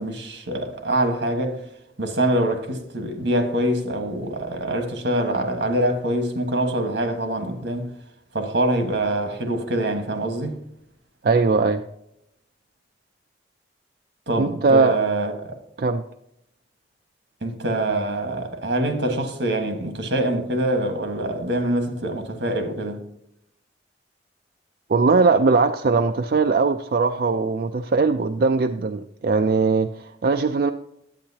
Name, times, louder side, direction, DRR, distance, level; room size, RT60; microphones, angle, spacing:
voice 1, 0.0-1.7 2.0-7.9 8.3-10.5 14.3-15.5 17.4-23.0, right 1 dB, 80° right, 1.5 m, -24 dB
voice 2, 11.2-11.8 14.4-15.0 15.8-16.0 24.9-30.7, right 4 dB, 55° right, 0.4 m, -20 dB
10.0 x 8.8 x 2.8 m
head